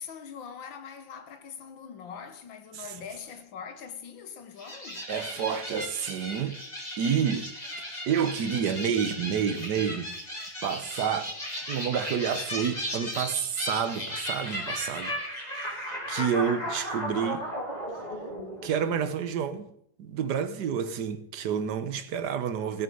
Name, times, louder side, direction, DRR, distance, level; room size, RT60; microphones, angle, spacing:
voice 1, 0.0-5.0, left 7 dB, 70° left, 1.9 m, -42 dB
sound 1, 4.6-19.2, equal, 20° left, 3.0 m, -36 dB
voice 2, 5.1-6.6 7.0-7.5 7.8-10.1 10.6-11.3 11.7-15.1 15.5-17.5 18.6-19.7 20.0-22.8, right 7 dB, 60° right, 1.5 m, -29 dB
16.5 x 8.5 x 5.5 m
omnidirectional pair, 2.2 m